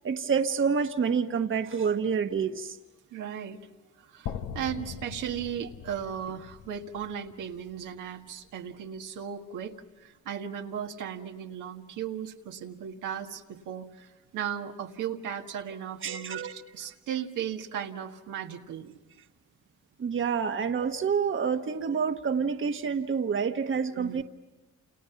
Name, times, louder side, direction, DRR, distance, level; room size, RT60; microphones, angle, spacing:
voice 1, 0.0-2.8 16.0-16.5 20.0-24.2, right 6 dB, 40° right, 6 dB, 1.3 m, -28 dB
voice 2, 3.1-3.6 4.1-19.0 23.9-24.2, right 8 dB, 85° right, 3 dB, 1.8 m, -36 dB
sound 1, 4.3-8.3, left 8 dB, 70° left, 1.3 m, -41 dB
29.0 x 28.5 x 5.9 m, 1.2 s
cardioid pair, 90°, 30 cm